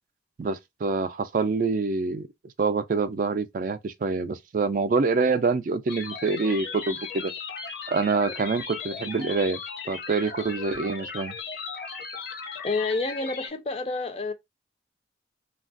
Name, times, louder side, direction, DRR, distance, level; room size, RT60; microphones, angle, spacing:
voice 1, 0.4-2.3 2.6-7.3 7.9-9.6 9.9-11.3, right 4 dB, 45° right, 0.3 m, -26 dB
sound 1, 5.9-13.5, left 5 dB, 60° left, 0.8 m, -37 dB
voice 2, 12.6-14.3, left 3 dB, 35° left, 0.4 m, -28 dB
3.2 x 2.3 x 2.5 m
head